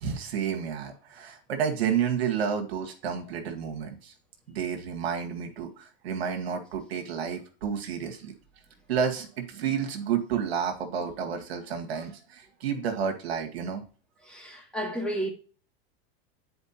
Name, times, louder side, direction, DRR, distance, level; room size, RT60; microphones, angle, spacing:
voice 1, 0.0-4.1 4.5-8.3 8.9-13.8, right 7 dB, 85° right, 1.5 m, -30 dB
voice 2, 14.2-15.3, right 1 dB, 5° left, 1.8 m, -32 dB
9.5 x 4.4 x 2.9 m
hypercardioid pair, 110°, 30 cm